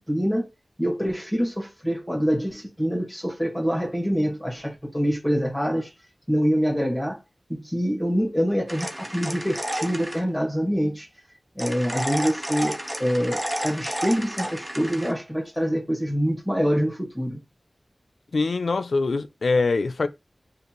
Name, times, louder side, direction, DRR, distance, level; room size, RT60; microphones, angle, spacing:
voice 1, 0.1-0.4 0.8-5.9 6.3-7.2 7.5-11.1 11.5-17.4, equal, 5° left, 1.6 m, -25 dB
sound 1, 8.7-10.2 11.6-15.1, right 1 dB, 15° right, 0.7 m, -31 dB
voice 2, 18.3-20.1, left 3 dB, 85° left, 0.4 m, -23 dB
5.1 x 2.4 x 3.0 m
wide cardioid pair, 75°, 0 cm